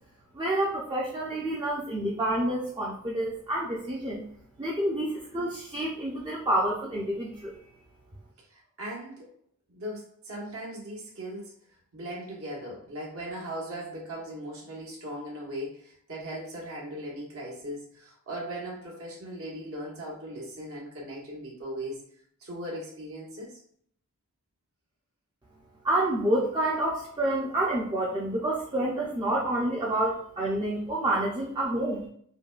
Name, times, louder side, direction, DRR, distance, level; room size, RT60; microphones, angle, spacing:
voice 1, 0.3-4.2 4.6-7.6 25.8-32.1, right 1 dB, 20° right, -4 dB, 0.5 m, -28 dB
voice 2, 8.4-9.3 9.7-11.5 11.9-22.0 22.4-23.6, right 1 dB, 70° right, -4 dB, 1.2 m, -38 dB
5.1 x 2.2 x 2.4 m, 0.62 s
head